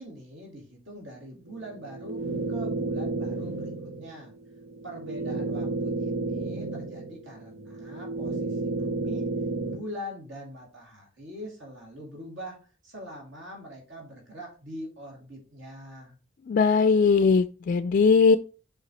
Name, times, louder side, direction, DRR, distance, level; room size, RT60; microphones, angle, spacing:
voice 1, 0.0-2.2 2.5-4.3 4.8-9.3 9.7-16.1, equal, 65° right, 0 dB, 2.5 m, -43 dB
sound 1, 1.5-9.8, right 3 dB, 90° right, 0.8 m, -32 dB
voice 2, 16.5-18.4, left 5 dB, 45° left, 10 dB, 0.3 m, -20 dB
6.6 x 4.8 x 3.0 m, 0.34 s
head